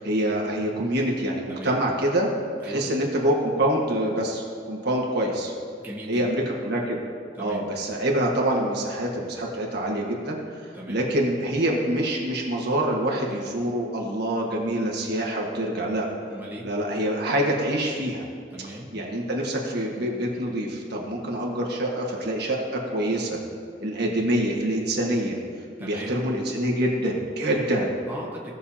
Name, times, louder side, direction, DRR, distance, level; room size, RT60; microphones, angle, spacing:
voice 1, 0.0-2.3 2.6-5.5 6.1-7.0 7.4-10.4 10.9-16.1 16.6-18.3 18.9-23.4 23.8-25.4 25.8-28.0, right 1 dB, 60° right, -1 dB, 1.5 m, -26 dB
voice 2, 1.5-1.8 2.6-2.9 5.8-6.3 7.4-7.6 10.7-11.1 16.3-16.7 18.5-18.9 25.8-26.2 28.1-28.5, right 1 dB, 10° right, -5 dB, 1.3 m, -38 dB
17.0 x 6.6 x 2.8 m, 2.2 s
head